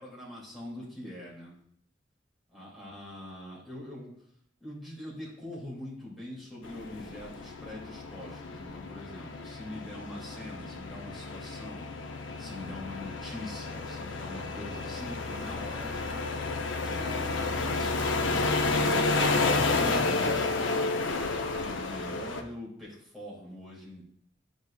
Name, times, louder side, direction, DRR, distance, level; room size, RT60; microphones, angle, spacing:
voice 1, 0.0-1.6 2.5-4.1 4.6-12.1 12.4-16.2 16.8-18.4 18.9-24.0, left 1 dB, ahead, -7 dB, 2.4 m, -43 dB
sound 1, 6.6-22.4, left 3 dB, 80° left, 0.6 m, -31 dB
9.4 x 5.4 x 2.3 m, 0.65 s
head